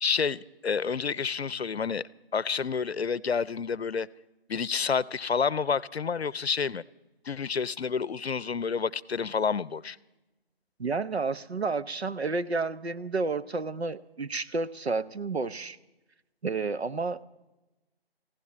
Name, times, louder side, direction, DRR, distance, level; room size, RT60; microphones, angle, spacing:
voice 1, 0.0-2.0 2.3-4.1 4.5-6.8 7.3-10.0, left 6 dB, 80° left, 21 dB, 0.6 m, -29 dB
voice 2, 10.8-15.8 16.4-17.2, right 4 dB, 90° right, 13 dB, 0.8 m, -31 dB
20.0 x 15.5 x 4.1 m, 1.0 s
figure-of-eight pair, 160°, 31 cm